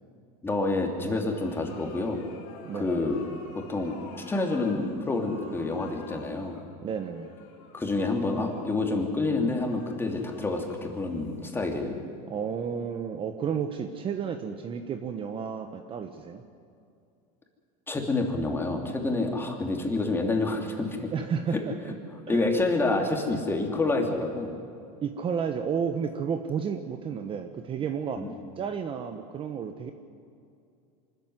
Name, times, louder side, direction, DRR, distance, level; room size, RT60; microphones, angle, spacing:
voice 1, 0.4-2.2 2.7-3.2 3.5-4.0 4.3-6.6 7.7-12.0 17.9-21.1 22.3-24.5 28.2-28.3, left 2 dB, 10° left, 3 dB, 3.0 m, -28 dB
sound 1, 1.1-12.1, left 5 dB, 70° left, 4.4 m, -49 dB
voice 2, 2.7-3.0 6.8-7.3 12.3-16.4 21.1-21.8 22.3-22.5 25.0-28.2 28.6-29.9, right 7 dB, 30° right, 7 dB, 1.1 m, -32 dB
24.5 x 13.5 x 9.6 m, 2.5 s
supercardioid pair, 140°, 19 cm